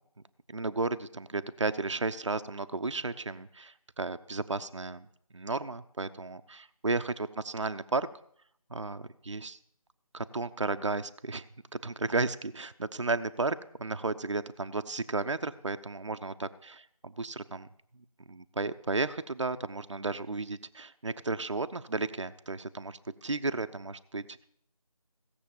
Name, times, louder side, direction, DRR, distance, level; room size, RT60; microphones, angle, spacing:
voice 1, 0.5-5.1 5.3-8.1 8.7-9.6 10.1-11.5 11.7-17.7 18.3-24.4, right 3 dB, 50° right, 10 dB, 0.7 m, -33 dB
17.0 x 7.0 x 7.1 m, 0.67 s
figure-of-eight pair, 170°, 19 cm